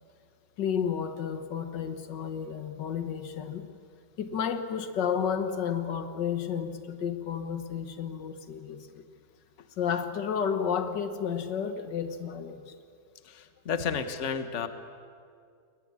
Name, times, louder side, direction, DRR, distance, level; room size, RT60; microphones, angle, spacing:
voice 1, 0.6-3.6 4.2-9.0 9.8-12.8, left 7 dB, 85° left, 9 dB, 1.9 m, -31 dB
voice 2, 13.2-14.7, left 6 dB, 45° left, 10 dB, 1.4 m, -32 dB
22.0 x 19.0 x 9.8 m, 2.2 s
omnidirectional pair, 1.9 m